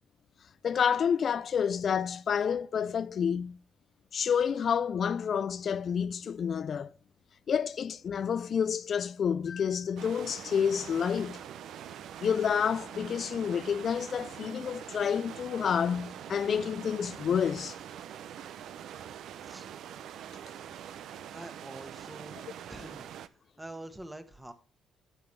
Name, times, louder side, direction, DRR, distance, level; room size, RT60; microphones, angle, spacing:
voice 1, 0.6-3.6 4.1-6.9 7.5-11.4 12.2-17.8, left 7 dB, 55° left, 0.3 m, -29 dB
sound 1, 10.0-23.3, right 9 dB, 70° right, 0.5 m, -44 dB
voice 2, 21.3-22.4 22.7-23.1 23.6-24.5, right 1 dB, 10° right, 1.3 m, -45 dB
11.5 x 7.1 x 3.2 m
supercardioid pair, 75°, 0 cm